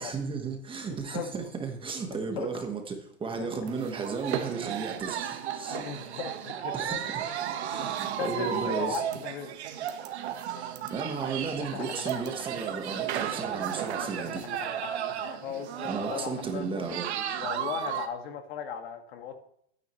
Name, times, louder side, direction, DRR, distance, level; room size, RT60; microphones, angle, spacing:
voice 1, 0.0-5.8 6.7-7.0 7.6-9.0 10.6-14.5 15.8-17.1, right 4 dB, 15° right, 4 dB, 1.4 m, -34 dB
voice 2, 1.1-1.5 2.2-2.7 3.4-3.7 5.7-7.0 7.8-7.9 8.2-9.5 11.4-12.1 13.6-17.0 17.4-19.4, left 7 dB, 65° left, 5 dB, 2.0 m, -38 dB
sound 1, 3.7-18.1, right 10 dB, 85° right, 1.4 m, -34 dB
12.5 x 9.3 x 3.2 m, 0.69 s
supercardioid pair, 140°, 32 cm